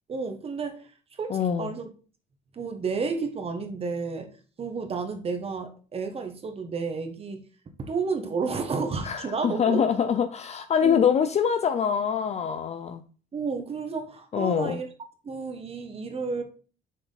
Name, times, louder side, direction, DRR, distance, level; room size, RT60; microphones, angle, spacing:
voice 1, 0.1-0.9 1.2-1.9 2.5-4.3 4.6-7.4 7.8-9.8 10.8-11.1 13.3-14.9 15.2-16.4, right 4 dB, 35° right, 1.5 m, -31 dB
voice 2, 1.3-1.7 9.0-13.0 14.3-14.8, left 7 dB, 40° left, 0.6 m, -24 dB
7.1 x 4.7 x 4.0 m
cardioid pair, 110°, 17 cm